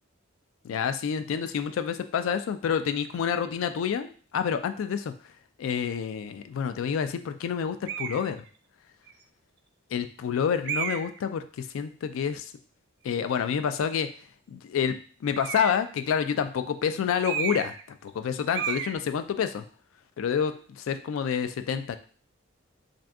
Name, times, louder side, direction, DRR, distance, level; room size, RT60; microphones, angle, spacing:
voice 1, 0.6-5.1 5.6-8.4 9.9-12.5 13.0-14.1 14.5-15.0 15.2-17.7 18.0-19.6 20.2-22.0, left 7 dB, 80° left, 9 dB, 0.3 m, -28 dB
sound 1, 7.9-8.3 9.1-9.2 10.6-11.2 15.3-15.9 17.2-17.8 18.1-18.3 18.5-18.9, right 8 dB, 55° right, 0.3 m, -32 dB
2.6 x 2.4 x 3.4 m, 0.43 s
head